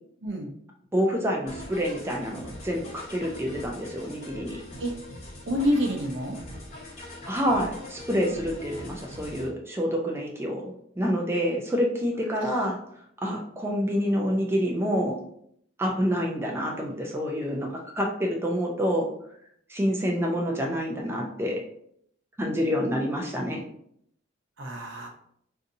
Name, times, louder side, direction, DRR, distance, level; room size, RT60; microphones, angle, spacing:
voice 1, 0.9-4.6 7.3-12.8 13.2-15.2 15.8-19.1 19.7-21.6 22.4-23.6, equal, 10° right, 0 dB, 0.4 m, -27 dB
sound 1, 1.5-9.5, left 1 dB, 35° left, 1.0 m, -42 dB
voice 2, 5.5-6.4 24.6-25.1, equal, 60° right, 1 dB, 0.7 m, -27 dB
3.9 x 2.6 x 2.6 m, 0.70 s
head